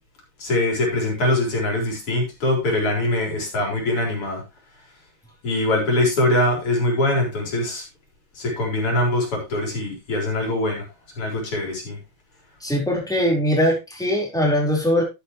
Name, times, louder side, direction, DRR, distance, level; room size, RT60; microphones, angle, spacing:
voice 1, 0.4-4.4 5.4-7.8 8.4-10.8 11.2-12.0, left 1 dB, 90° left, 0 dB, 4.9 m, -23 dB
voice 2, 12.6-15.0, equal, ahead, -2 dB, 4.2 m, -21 dB
12.0 x 9.1 x 3.1 m, 0.25 s
omnidirectional pair, 2.4 m